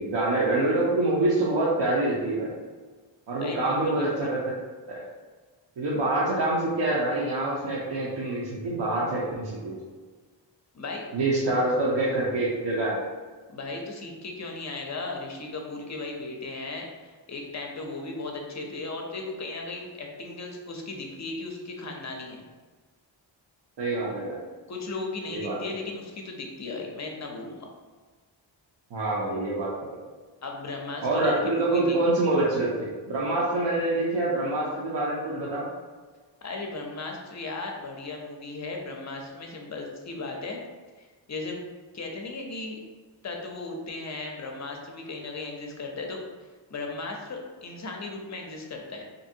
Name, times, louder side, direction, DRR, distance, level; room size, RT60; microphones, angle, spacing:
voice 1, 0.0-2.5 3.3-4.4 5.8-9.8 11.1-13.0 23.8-24.4 25.3-25.6 28.9-30.0 31.0-35.7, right 2 dB, 65° right, -7 dB, 0.7 m, -26 dB
voice 2, 3.4-4.3 10.7-11.0 13.5-22.5 24.7-27.7 30.4-32.0 36.4-40.6 41.0-41.6 41.9-42.8 43.2-46.2 46.7-49.1, left 3 dB, 40° left, 1 dB, 0.5 m, -36 dB
2.7 x 2.6 x 2.6 m, 1.4 s
wide cardioid pair, 90°, 46 cm